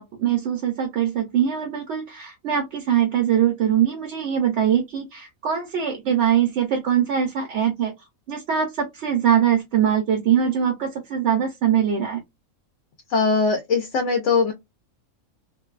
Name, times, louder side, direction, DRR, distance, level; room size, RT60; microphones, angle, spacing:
voice 1, 0.0-7.9 8.3-12.2, right 9 dB, 65° right, 0.8 m, -22 dB
voice 2, 13.1-14.5, left 4 dB, 65° left, 0.8 m, -21 dB
2.5 x 2.2 x 2.3 m
omnidirectional pair, 1.4 m